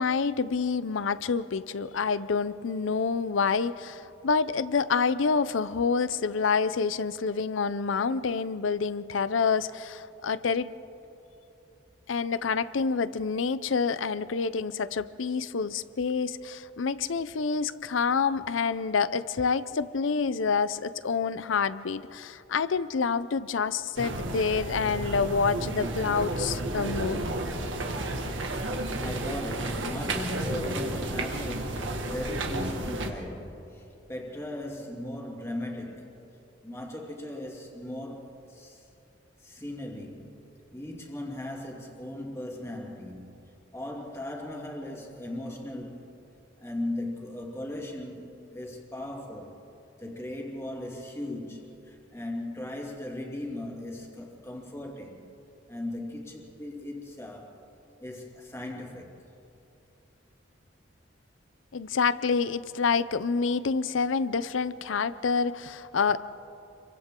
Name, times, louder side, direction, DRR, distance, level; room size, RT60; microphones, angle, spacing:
voice 1, 0.0-10.7 12.1-27.3 61.7-66.2, left 5 dB, 90° left, 0.6 m, -27 dB
sound 1, 24.0-33.1, right 1 dB, 85° right, 1.8 m, -32 dB
voice 2, 29.0-36.3 36.6-38.9 39.4-40.4 40.7-46.1 46.6-49.6 50.0-55.3 55.7-57.6 58.0-59.3, left 1 dB, 15° left, 2.4 m, -38 dB
29.0 x 23.5 x 3.7 m
head